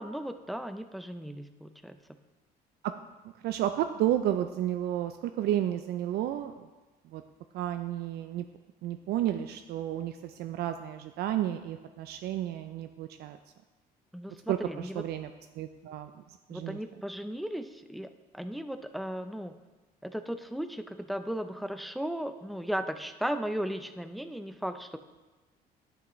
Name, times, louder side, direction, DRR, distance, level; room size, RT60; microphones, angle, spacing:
voice 1, 0.0-2.0 14.1-15.0 16.5-19.6 20.0-25.0, equal, ahead, 9 dB, 0.4 m, -36 dB
voice 2, 3.4-6.7 7.1-7.2 7.5-8.4 8.8-13.4 14.5-15.3 15.6-16.1 16.5-16.8, right 12 dB, 70° right, 8 dB, 0.4 m, -31 dB
10.5 x 5.9 x 3.0 m, 1.2 s
cardioid pair, 110°, 17 cm